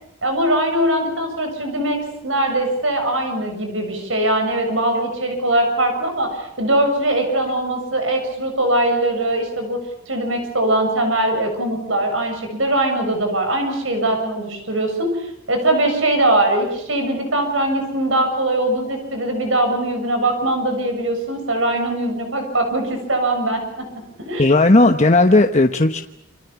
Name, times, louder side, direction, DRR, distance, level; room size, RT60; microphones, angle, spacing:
voice 1, 0.2-9.8 10.1-24.5, right 1 dB, 75° right, 5 dB, 7.2 m, -21 dB
voice 2, 24.4-26.0, left 2 dB, 35° left, 5 dB, 1.1 m, -14 dB
29.0 x 27.0 x 7.2 m, 0.76 s
head